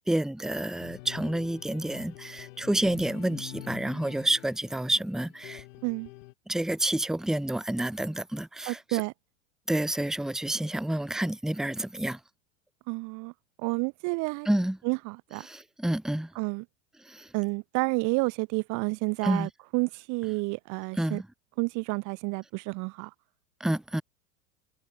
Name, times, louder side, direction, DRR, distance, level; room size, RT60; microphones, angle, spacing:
voice 1, 0.1-5.6 6.5-9.0 9.7-12.2 14.4-14.8 15.4-16.3 17.0-17.3 19.2-19.5 20.9-21.3 23.6-24.0, right 1 dB, ahead, 1.1 m, -29 dB
sound 1, 0.8-6.3, left 20 dB, 65° left, 4.0 m, -46 dB
voice 2, 8.7-9.1 12.9-13.3 13.6-14.5 14.8-15.5 16.4-16.6 17.3-21.2 21.6-23.1, right 28 dB, 50° right, 1.1 m, -30 dB
hypercardioid pair, 110°, 40 cm